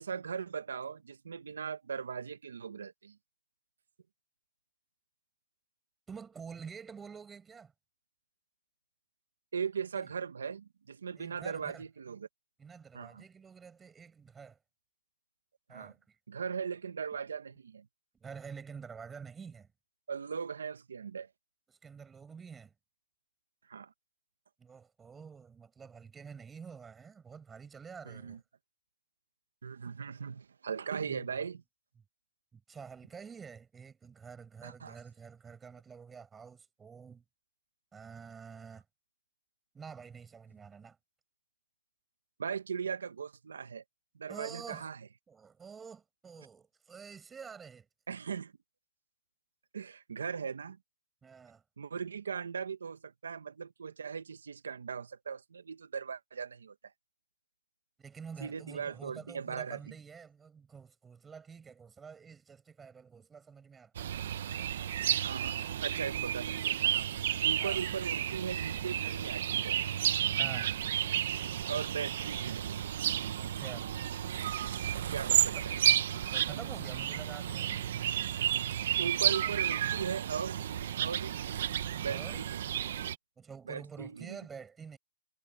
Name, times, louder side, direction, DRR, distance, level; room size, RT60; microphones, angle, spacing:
voice 1, 0.0-3.2 9.5-12.3 12.9-13.2 15.7-15.9 16.3-17.8 20.1-21.3 23.7-23.9 28.0-28.4 29.6-31.6 34.6-35.0 42.4-43.8 44.1-45.0 48.1-48.5 49.7-50.8 51.8-56.7 58.4-59.8 64.3-64.6 65.2-67.1 67.4-69.8 71.7-72.8 75.1-75.9 79.0-81.3 82.0-82.7 83.7-84.4, right 6 dB, 75° right, 1.3 m, -39 dB
voice 2, 6.1-7.7 11.2-11.8 12.6-14.6 15.7-16.2 18.2-19.7 21.7-22.7 24.6-28.4 31.0-31.4 32.5-37.2 37.9-38.8 39.7-41.0 44.3-44.9 45.3-47.9 51.2-51.6 58.0-64.1 67.6-67.8 70.4-70.7 73.4-73.9 75.5-75.6 76.3-78.1 79.4-79.6 82.1-82.4 83.4-85.0, right 6 dB, 5° right, 6.4 m, -48 dB
sound 1, 63.9-83.1, right 10 dB, 40° right, 0.8 m, -32 dB
hypercardioid pair, 175°, 0 cm